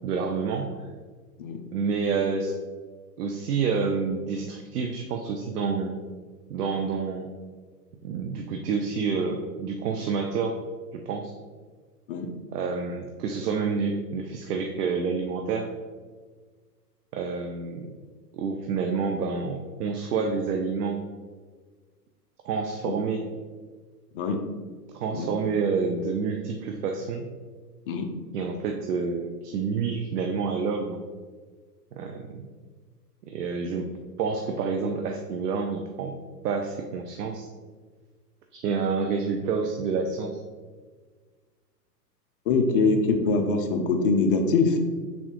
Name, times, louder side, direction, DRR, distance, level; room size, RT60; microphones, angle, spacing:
voice 1, 0.0-0.9 1.7-2.5 3.2-6.0 6.5-7.3 8.0-10.6 10.9-11.3 12.5-15.7 17.1-17.9 18.3-21.0 22.4-23.3 24.9-27.3 28.3-31.1 31.9-32.5 33.2-33.9 34.2-36.1 36.4-37.5 38.5-40.4, right 5 dB, 75° right, 4 dB, 0.6 m, -28 dB
voice 2, 42.5-44.8, left 4 dB, 35° left, 5 dB, 0.4 m, -23 dB
4.1 x 3.7 x 3.0 m, 1.5 s
hypercardioid pair, 125°, 48 cm